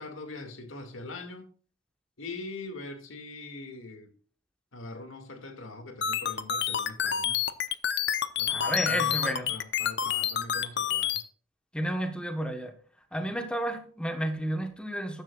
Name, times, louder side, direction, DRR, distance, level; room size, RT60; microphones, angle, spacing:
voice 1, 0.0-1.5 2.2-4.1 4.7-7.4 8.4-11.2 13.2-13.3, left 2 dB, 85° left, 2.2 m, -42 dB
sound 1, 6.0-11.2, left 8 dB, 55° left, 0.8 m, -28 dB
voice 2, 8.5-9.5 11.7-12.8 13.1-15.2, equal, 5° left, 1.2 m, -31 dB
14.0 x 10.5 x 2.4 m
head